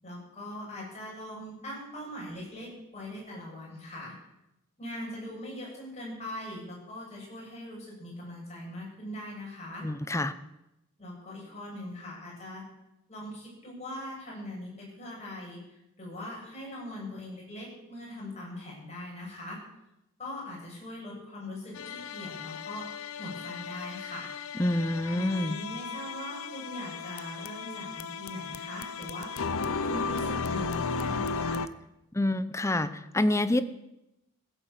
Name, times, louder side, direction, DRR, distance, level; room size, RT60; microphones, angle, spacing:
voice 1, 0.0-4.1 4.8-9.9 11.0-12.7 13.1-19.6 20.2-24.3 25.1-29.5 29.8-31.6, left 1 dB, 30° left, -4 dB, 7.6 m, -41 dB
voice 2, 9.8-10.3 24.6-25.6 32.1-33.6, left 1 dB, 15° left, 13 dB, 0.7 m, -27 dB
sound 1, 21.7-31.7, left 4 dB, 70° left, 0.7 m, -35 dB
16.0 x 9.0 x 7.3 m, 0.89 s
head